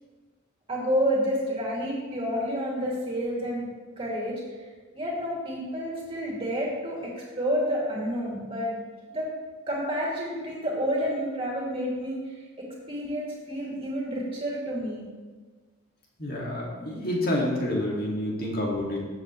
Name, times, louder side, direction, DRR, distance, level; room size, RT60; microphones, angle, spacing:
voice 1, 0.7-3.7 4.0-4.4 4.9-8.8 9.1-9.3 9.7-12.2 12.6-15.0, equal, 25° right, -4 dB, 2.8 m, -29 dB
voice 2, 16.2-19.0, left 1 dB, 45° left, -3 dB, 2.5 m, -28 dB
14.0 x 7.9 x 3.3 m, 1.4 s
head